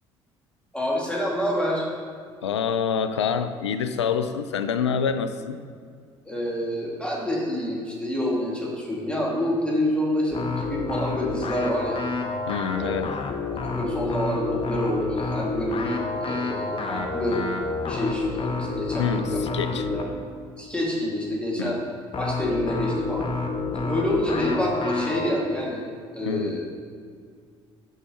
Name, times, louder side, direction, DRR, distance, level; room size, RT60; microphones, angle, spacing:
voice 1, 0.7-1.9 6.2-12.0 12.8-13.0 13.5-17.4 17.8-20.1 20.6-21.8 22.2-23.3 23.8-25.8 26.1-26.6, left 1 dB, 5° left, -4 dB, 2.2 m, -27 dB
voice 2, 2.4-5.6 12.5-13.2 19.0-19.9 21.6-21.8 26.2-26.6, left 6 dB, 85° left, 11 dB, 0.4 m, -27 dB
sound 1, 10.3-20.2 22.1-25.3, left 3 dB, 40° left, 0.8 m, -29 dB
13.0 x 5.5 x 3.0 m, 2.1 s
figure-of-eight pair, 50°, 14 cm